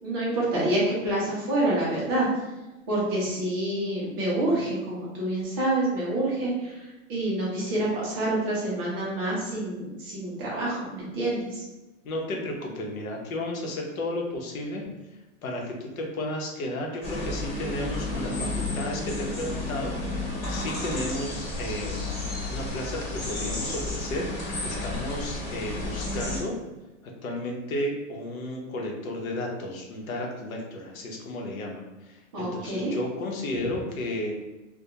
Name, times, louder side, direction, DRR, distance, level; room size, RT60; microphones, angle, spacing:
voice 1, 0.0-2.3 2.9-11.6 32.3-32.9, right 1 dB, 15° right, -7 dB, 0.4 m, -27 dB
voice 2, 12.0-14.8 15.4-22.1 22.5-26.5 27.2-34.4, left 1 dB, 85° left, 0 dB, 0.8 m, -33 dB
sound 1, 17.0-26.4, left 2 dB, 50° left, 1.2 m, -32 dB
2.3 x 2.2 x 2.8 m, 1.0 s
hypercardioid pair, 155°, 41 cm